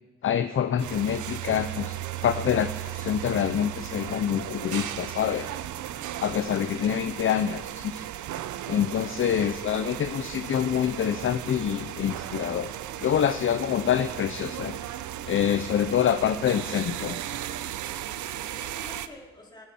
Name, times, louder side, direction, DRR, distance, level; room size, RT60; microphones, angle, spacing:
voice 1, 0.2-2.0 2.2-5.5 6.2-8.0 8.7-12.7 13.0-14.8 15.3-17.2, left 9 dB, 45° left, 10 dB, 0.6 m, -26 dB
sound 1, 0.8-19.1, right 12 dB, 75° right, 0.7 m, -36 dB
voice 2, 8.7-9.4 18.1-19.7, left 1 dB, 15° left, -2 dB, 3.5 m, -49 dB
22.5 x 8.9 x 4.3 m, 1.2 s
cardioid pair, 90°, 30 cm